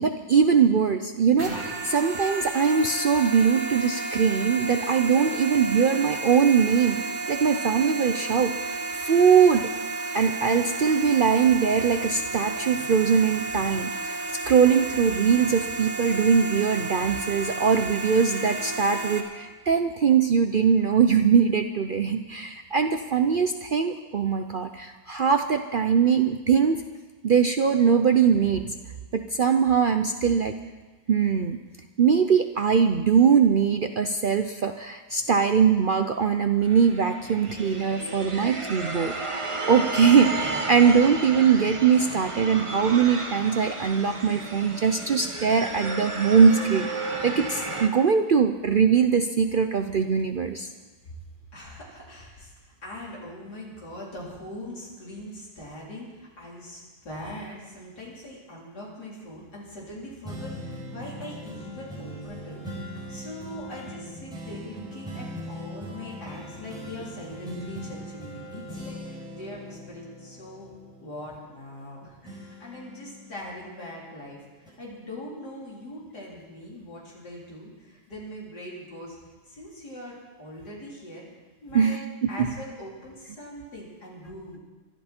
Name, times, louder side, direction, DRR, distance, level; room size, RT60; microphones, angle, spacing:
voice 1, 0.0-8.7 9.0-9.7 10.1-14.2 14.5-26.8 27.2-28.7 29.1-30.5 31.1-31.6 32.0-50.7 81.7-82.0 82.2-82.5, right 6 dB, 75° right, 7 dB, 0.4 m, -21 dB
sound 1, 1.4-19.2, right 3 dB, 45° right, 2.4 m, -32 dB
sound 2, 36.6-47.9, right 2 dB, 20° right, 1.1 m, -33 dB
voice 2, 51.5-70.7 71.0-79.2 79.4-81.3 81.6-84.6, left 1 dB, 80° left, -5 dB, 4.6 m, -41 dB
sound 3, 60.2-71.9 72.2-74.1 74.6-74.7, equal, ahead, 4.9 m, -40 dB
24.5 x 12.0 x 4.4 m, 1.3 s
omnidirectional pair, 1.7 m